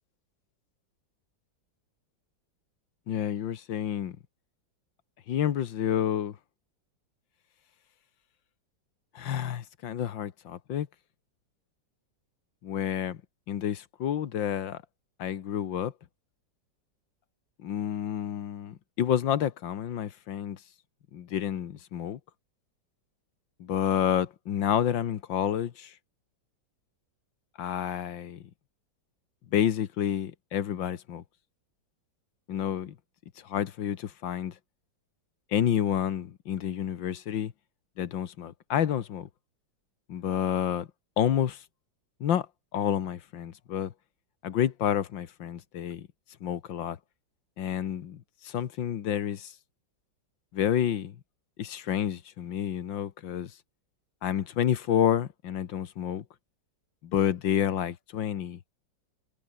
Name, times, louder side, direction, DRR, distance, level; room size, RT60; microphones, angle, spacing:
voice 1, 3.1-4.2 5.3-6.4 9.2-10.9 12.6-13.2 13.5-14.8 15.2-15.9 17.6-20.6 21.1-22.2 23.6-25.9 27.6-28.4 29.5-31.2 32.5-33.0 33.5-34.5 35.5-37.5 38.0-39.3 40.1-40.9 41.2-41.6 42.2-42.5 42.7-43.9 44.4-46.1 46.4-47.0 47.6-49.5 50.5-51.1 51.6-53.5 54.2-56.2 57.0-58.6, left 10 dB, 75° left, 1.9 m, -29 dB
omnidirectional pair, 2.1 m